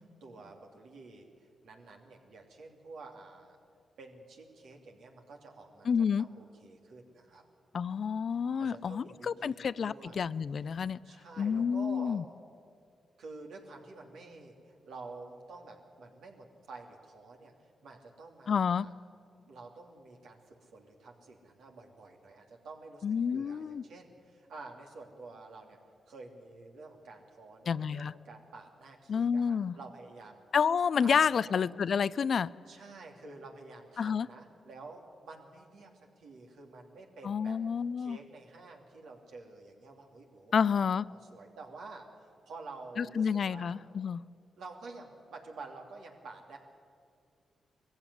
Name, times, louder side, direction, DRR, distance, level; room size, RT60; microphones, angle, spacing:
voice 1, 0.2-3.6 4.0-7.4 8.6-10.3 10.6-12.2 13.2-18.9 19.5-23.0 23.3-25.8 26.1-30.4 31.0-31.7 32.7-35.9 36.2-37.6 38.0-43.8 44.6-46.6, right 3 dB, 80° right, 1 dB, 3.0 m, -49 dB
voice 2, 5.9-6.2 7.7-11.0 11.4-12.2 18.5-18.9 23.0-23.8 27.7-28.1 29.1-29.7 30.5-32.5 34.0-34.3 37.2-38.2 40.5-41.0 43.0-44.2, left 6 dB, 65° left, 18 dB, 0.4 m, -29 dB
20.5 x 15.5 x 9.9 m, 2.3 s
supercardioid pair, 50°, 0 cm